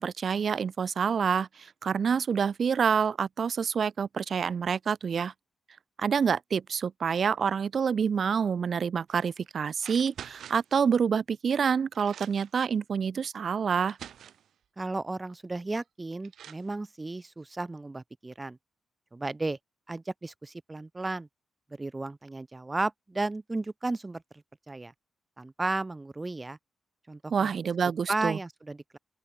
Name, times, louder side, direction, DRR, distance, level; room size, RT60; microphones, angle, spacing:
voice 1, 0.0-5.3 6.0-14.0 27.3-28.4, right 6 dB, 50° right, 1.5 m, -27 dB
sound 1, 9.1-9.3 9.8-10.7 11.6-11.7 11.9-12.6 13.4-13.5 13.8-14.5 15.8-15.9 16.2-16.7, right 9 dB, 80° right, 6.1 m, -46 dB
voice 2, 14.8-18.6 19.1-19.6 19.9-21.3 21.8-24.2 24.7-24.9 25.4-26.6 27.1-27.5 28.1-29.0, right 2 dB, 20° right, 4.5 m, -34 dB
open air
cardioid pair, 110°, 0 cm